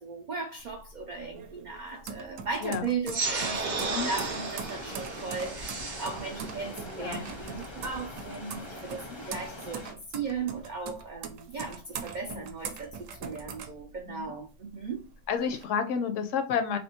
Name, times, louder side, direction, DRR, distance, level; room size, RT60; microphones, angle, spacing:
voice 1, 0.0-15.0, right 4 dB, 90° right, 0.4 m, -37 dB
sound 1, 0.6-14.4 14.8-15.6, right 6 dB, 75° right, 0.9 m, -42 dB
sound 2, 3.1-8.1, right 3 dB, 45° right, 0.6 m, -34 dB
sound 3, 3.6-9.9, left 1 dB, 30° left, 0.5 m, -44 dB
voice 2, 15.3-16.8, left 7 dB, 75° left, 0.9 m, -31 dB
3.4 x 2.5 x 2.8 m
omnidirectional pair, 1.4 m